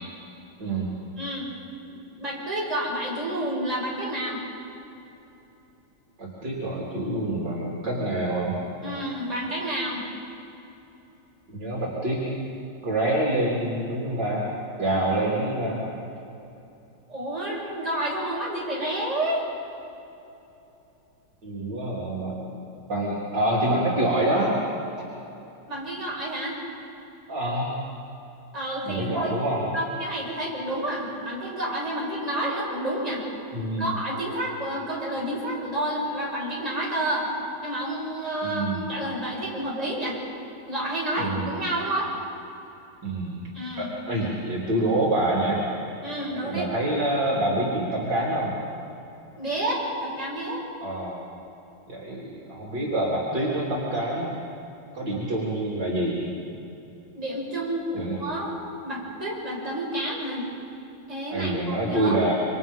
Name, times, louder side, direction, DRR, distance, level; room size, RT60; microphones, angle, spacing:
voice 1, 0.6-0.9 6.2-8.6 11.5-12.3 12.8-14.5 14.8-15.8 21.4-22.6 22.9-24.5 27.3-27.7 28.8-29.7 33.5-33.9 38.4-38.8 41.2-41.5 43.0-43.4 43.8-45.6 46.4-48.5 50.8-51.2 51.9-54.4 54.9-56.2 57.9-58.2 61.3-62.3, right 1 dB, 55° right, -5 dB, 4.1 m, -26 dB
voice 2, 1.2-1.5 1.9-4.4 8.8-10.0 17.1-19.4 25.7-26.6 28.5-29.3 29.7-33.2 33.8-37.3 37.6-40.2 40.7-42.1 43.5-43.9 46.0-46.7 49.4-50.6 57.1-58.5 58.8-60.5 61.1-62.2, right 1 dB, 15° right, -5 dB, 6.8 m, -29 dB
27.5 x 25.5 x 5.6 m, 2.9 s
omnidirectional pair, 2.3 m